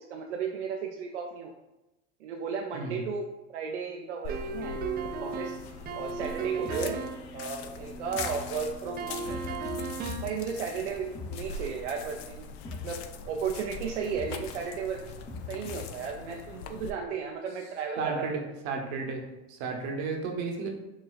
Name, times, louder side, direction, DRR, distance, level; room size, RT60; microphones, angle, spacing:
voice 1, 0.0-1.5 2.2-4.8 5.2-5.6 5.9-7.0 7.3-9.5 10.2-12.5 12.8-15.2 15.5-18.3, right 6 dB, 85° right, 1 dB, 0.5 m, -34 dB
sound 1, 4.2-16.9, left 4 dB, 70° left, 0.5 m, -42 dB
sound 2, 4.3-7.3 9.0-10.4, right 5 dB, 30° right, 0.4 m, -35 dB
sound 3, 5.6-15.9, left 4 dB, 20° left, 0.8 m, -44 dB
voice 2, 18.0-18.4 18.6-20.7, right 4 dB, 65° right, 1 dB, 0.9 m, -33 dB
6.2 x 2.3 x 2.4 m, 0.98 s
hypercardioid pair, 85°, 34 cm